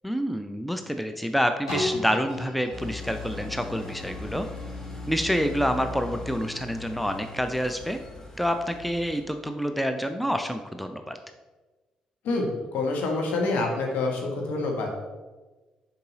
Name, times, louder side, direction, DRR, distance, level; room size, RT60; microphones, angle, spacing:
voice 1, 0.0-4.5 5.1-8.0 8.4-11.2, equal, ahead, 7 dB, 0.5 m, -27 dB
sound 1, 1.7-7.4 8.0-8.1, left 1 dB, 85° left, 2.0 m, -38 dB
sound 2, 2.7-9.2, left 3 dB, 20° left, 1.2 m, -39 dB
voice 2, 12.2-14.9, left 3 dB, 60° left, 1 dB, 1.3 m, -27 dB
6.7 x 4.7 x 3.8 m, 1.2 s
figure-of-eight pair, 40°, 3 cm